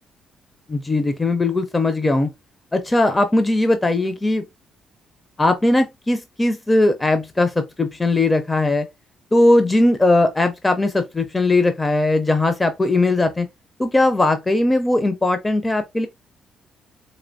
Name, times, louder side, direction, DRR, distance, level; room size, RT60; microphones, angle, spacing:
voice 1, 0.7-2.3 2.7-4.5 5.4-8.9 9.3-13.5 13.8-16.1, left 2 dB, 20° left, 0.5 m, -19 dB
4.2 x 2.9 x 2.5 m
cardioid pair, 90°, 0 cm